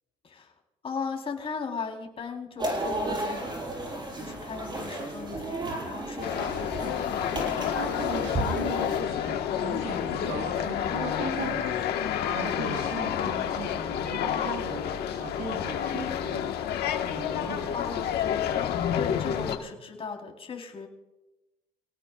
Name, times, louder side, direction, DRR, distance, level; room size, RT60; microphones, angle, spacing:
voice 1, 0.8-3.4 4.2-7.0 17.7-20.9, left 5 dB, 35° left, 1 dB, 3.7 m, -37 dB
sound 1, 2.6-9.0, right 1 dB, 25° right, 5.7 m, -33 dB
sound 2, 6.2-19.6, left 9 dB, 70° left, 1.4 m, -29 dB
voice 2, 7.7-11.8 12.3-16.5 17.0-17.9, right 3 dB, 80° right, 1 dB, 6.7 m, -37 dB
27.5 x 18.0 x 2.4 m, 1.0 s
cardioid pair, 110°, 17 cm